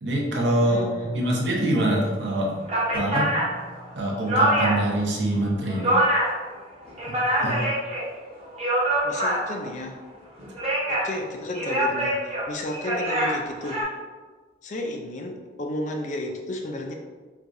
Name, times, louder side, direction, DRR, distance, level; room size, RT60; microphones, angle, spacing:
voice 1, 0.0-2.6 2.9-3.3 3.9-6.0 7.1-7.2 7.4-7.6, right 1 dB, 75° right, -2 dB, 0.8 m, -24 dB
voice 2, 0.6-1.3 7.4-7.7 9.0-10.0 10.9-13.8 14.6-16.9, left 1 dB, 40° left, 3 dB, 0.4 m, -33 dB
sound 1, 2.2-2.3 2.6-5.0 5.3-6.4 6.8-8.1 8.4-9.7 10.4-11.2 11.5-13.8, right 1 dB, 35° right, 0.9 m, -25 dB
sound 2, 2.9-4.8, right 1 dB, 10° left, 0.7 m, -45 dB
4.6 x 2.3 x 2.5 m, 1.4 s
head